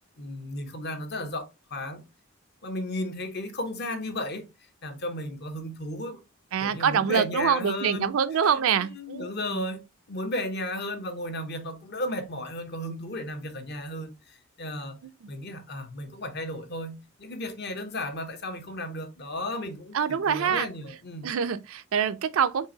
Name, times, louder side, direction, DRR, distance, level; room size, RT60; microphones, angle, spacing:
voice 1, 0.2-2.0 2.6-4.5 4.8-6.2 6.6-8.1 8.5-9.8 10.1-15.0 15.3-21.3, left 1 dB, 55° left, 0.9 m, -34 dB
voice 2, 6.5-9.6 15.2-15.3 19.9-20.7 21.2-22.7, right 7 dB, 85° right, 0.4 m, -25 dB
4.6 x 3.2 x 2.8 m
head